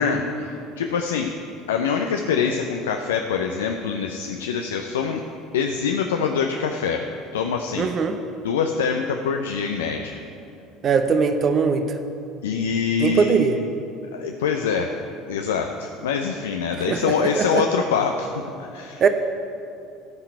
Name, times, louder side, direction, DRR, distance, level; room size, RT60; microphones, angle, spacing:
voice 1, 0.0-1.3 1.7-5.2 5.5-7.0 7.3-7.9 8.4-10.2 12.4-13.5 14.1-14.9 15.3-19.0, left 6 dB, 75° left, 4 dB, 0.6 m, -24 dB
voice 2, 7.8-8.1 10.8-11.9 13.0-13.6 16.9-17.6 19.0-19.1, right 5 dB, 40° right, 8 dB, 0.8 m, -20 dB
13.0 x 5.8 x 8.2 m, 2.7 s
figure-of-eight pair, 65°, 0 cm